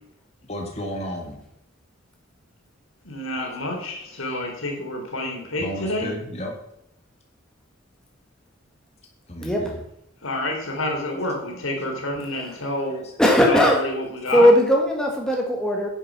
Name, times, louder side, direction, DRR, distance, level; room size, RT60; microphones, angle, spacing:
voice 1, 0.5-1.4 3.4-3.8 4.1-4.5 5.6-6.5 9.3-9.8 11.1-11.2 11.5-12.3 12.8-13.2, equal, 30° left, 1 dB, 1.8 m, -35 dB
voice 2, 3.0-6.1 10.2-13.0 13.4-14.5, left 1 dB, 85° left, 1 dB, 3.3 m, -28 dB
voice 3, 9.4-9.7 12.3-12.6 13.2-13.8 14.3-15.9, equal, 5° left, 0 dB, 1.6 m, -18 dB
10.0 x 7.8 x 6.0 m, 0.77 s
head